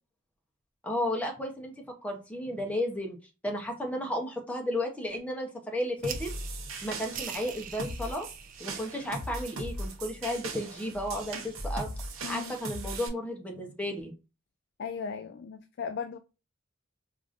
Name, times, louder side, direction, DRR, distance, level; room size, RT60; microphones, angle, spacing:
voice 1, 0.8-1.7 2.0-3.2 3.4-6.3 6.8-8.3 8.6-11.9 12.3-14.1, left 1 dB, 5° left, 0.7 m, -33 dB
sound 1, 6.0-12.2, right 8 dB, 40° right, 0.4 m, -46 dB
sound 2, 6.0-13.1, right 2 dB, 75° right, 0.8 m, -38 dB
voice 2, 12.2-12.6 14.8-16.2, left 6 dB, 55° left, 0.3 m, -37 dB
4.7 x 2.5 x 2.4 m
head